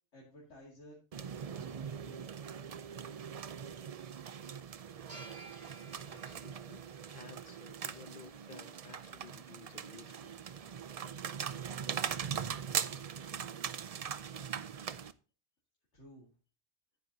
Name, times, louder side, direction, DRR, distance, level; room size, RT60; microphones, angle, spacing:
voice 1, 0.1-2.6 13.9-14.1 15.9-16.3, left 1 dB, 80° left, 2.7 m, -56 dB
sound 1, 1.1-15.1, right 7 dB, 50° right, 0.4 m, -41 dB
sound 2, 5.1-8.0, right 1 dB, 25° right, 6.4 m, -56 dB
voice 2, 6.1-10.4, left 6 dB, 45° left, 1.0 m, -55 dB
11.0 x 9.4 x 2.7 m
omnidirectional pair, 1.2 m